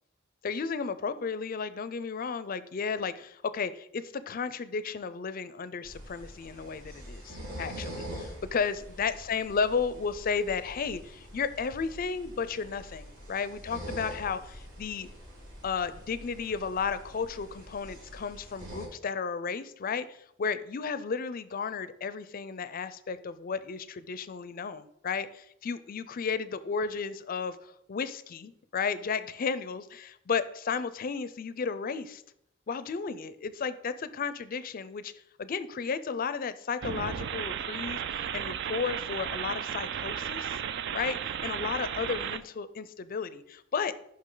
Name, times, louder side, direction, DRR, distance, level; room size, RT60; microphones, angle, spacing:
voice 1, 0.4-15.1 15.6-32.2 32.7-35.1 35.4-40.6 40.9-43.9, left 5 dB, 45° left, 14 dB, 0.4 m, -33 dB
sound 1, 5.8-18.9, equal, 80° right, 3.6 m, -45 dB
sound 2, 36.8-42.4, right 8 dB, 60° right, 0.4 m, -34 dB
9.6 x 5.7 x 3.8 m, 0.76 s
head